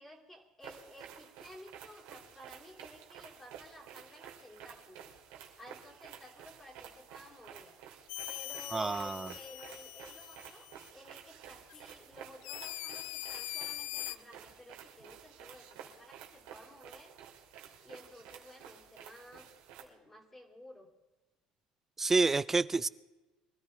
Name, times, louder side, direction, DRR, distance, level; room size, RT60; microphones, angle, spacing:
voice 1, 0.0-5.1 5.6-7.7 8.3-17.1 17.8-19.5 19.8-20.9, equal, 10° left, 1 dB, 2.9 m, -54 dB
sound 1, 0.6-19.8, right 9 dB, 90° right, 2.6 m, -52 dB
sound 2, 8.1-10.9 11.7-11.8 12.4-14.2, left 19 dB, 90° left, 0.4 m, -42 dB
voice 2, 8.7-9.3 22.0-22.9, right 3 dB, 15° right, 17 dB, 0.4 m, -28 dB
24.0 x 14.0 x 3.3 m, 1.1 s
cardioid pair, 125°, 2 cm